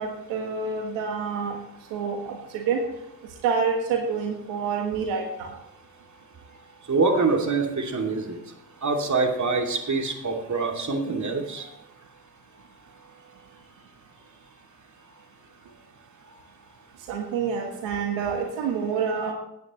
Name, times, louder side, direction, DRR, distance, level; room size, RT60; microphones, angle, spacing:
voice 1, 0.0-1.6 1.9-2.8 3.4-5.5 17.1-19.3, right 5 dB, 80° right, 3 dB, 1.5 m, -27 dB
voice 2, 6.9-8.4 8.8-11.7, right 3 dB, 40° right, 3 dB, 2.8 m, -25 dB
16.5 x 9.5 x 3.2 m, 0.86 s
hypercardioid pair, 45°, 43 cm